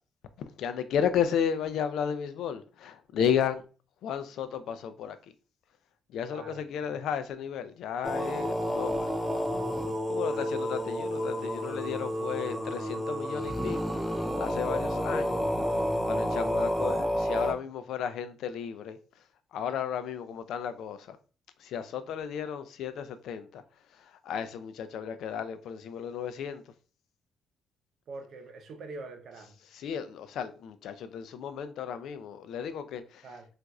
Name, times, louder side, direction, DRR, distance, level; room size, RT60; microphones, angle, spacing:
voice 1, 0.6-3.6 4.0-5.2 6.1-9.1 10.1-13.8 14.4-15.5 16.1-19.0 19.5-21.2 21.6-23.6 23.9-26.6 29.6-33.4, left 8 dB, 80° left, 0.3 m, -33 dB
voice 2, 6.3-7.0 10.2-10.4 28.1-29.5 33.2-33.5, right 3 dB, 65° right, 0.6 m, -44 dB
sound 1, 8.0-17.5, equal, 5° left, 0.6 m, -30 dB
4.0 x 2.4 x 2.3 m
cardioid pair, 90°, 0 cm